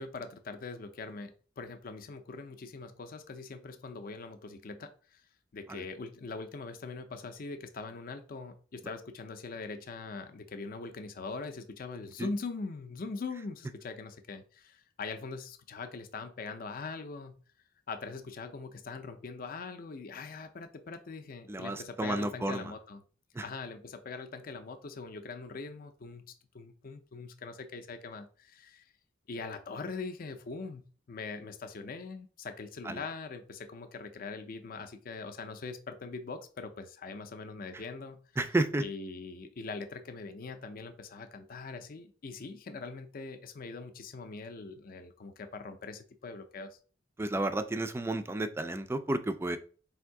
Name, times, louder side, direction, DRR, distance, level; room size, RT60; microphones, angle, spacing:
voice 1, 0.0-5.2 5.5-17.4 17.9-23.0 23.4-26.2 26.5-28.8 29.3-38.2 38.8-46.7, left 4 dB, 50° left, 7 dB, 0.5 m, -42 dB
voice 2, 21.5-22.7 23.4-23.5 32.9-33.0 38.4-38.8 47.2-49.6, right 2 dB, 15° right, 10 dB, 0.3 m, -32 dB
3.5 x 2.7 x 4.6 m, 0.40 s
head